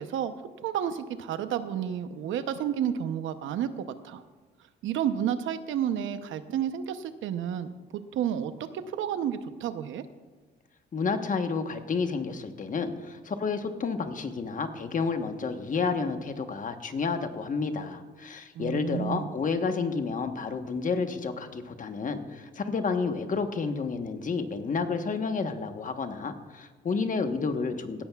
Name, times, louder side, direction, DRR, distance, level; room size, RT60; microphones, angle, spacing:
voice 1, 0.0-4.2 4.8-10.0 18.5-19.3, right 9 dB, 80° right, 10 dB, 0.8 m, -31 dB
voice 2, 10.9-28.0, left 4 dB, 40° left, 7 dB, 1.1 m, -30 dB
17.0 x 14.0 x 2.4 m, 1.3 s
cardioid pair, 90°, 20 cm